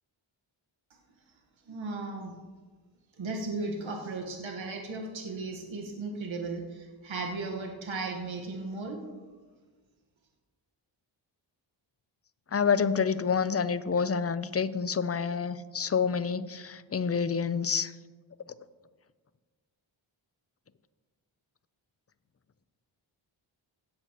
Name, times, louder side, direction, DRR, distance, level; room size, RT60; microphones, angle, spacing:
voice 1, 1.7-2.4 3.2-9.1, right 3 dB, 75° right, 0 dB, 1.4 m, -36 dB
voice 2, 12.5-17.9, left 6 dB, 30° left, 14 dB, 0.6 m, -28 dB
17.0 x 8.1 x 3.0 m, 1.4 s
cardioid pair, 60°, 48 cm